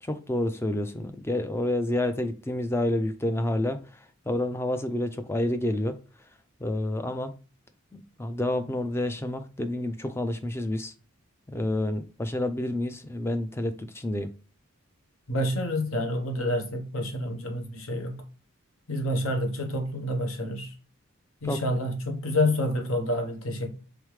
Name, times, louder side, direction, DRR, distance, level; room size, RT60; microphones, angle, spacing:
voice 1, 0.0-3.8 4.3-6.0 6.6-7.3 7.9-10.9 11.5-14.3 21.4-21.6, left 1 dB, 10° left, 0.3 m, -29 dB
voice 2, 15.3-18.2 18.9-20.7 21.4-23.7, left 1 dB, 75° left, 1.0 m, -28 dB
3.6 x 3.4 x 3.2 m
head